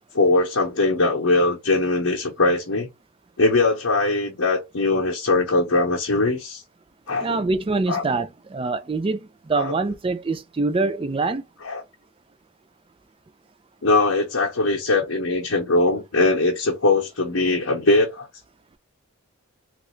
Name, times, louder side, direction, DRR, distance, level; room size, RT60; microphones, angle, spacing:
voice 1, 0.1-2.9 3.4-6.6 7.1-7.4 7.9-8.0 9.5-9.7 11.6-11.8 13.8-18.3, left 2 dB, 80° left, 0.8 m, -21 dB
voice 2, 7.2-11.4, right 3 dB, 25° right, 0.3 m, -25 dB
3.2 x 2.4 x 3.1 m
head